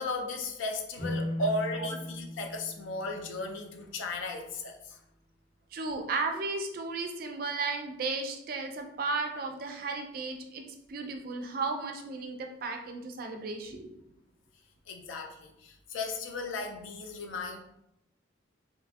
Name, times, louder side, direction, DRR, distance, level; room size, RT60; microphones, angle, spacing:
voice 1, 0.0-5.0 14.9-17.6, left 2 dB, 80° left, 4 dB, 0.4 m, -35 dB
sound 1, 0.9-4.2, left 1 dB, 55° left, 0.9 m, -38 dB
voice 2, 5.7-10.6 10.9-13.9, right 3 dB, 50° right, 4 dB, 0.3 m, -34 dB
2.8 x 2.3 x 2.5 m, 0.81 s
head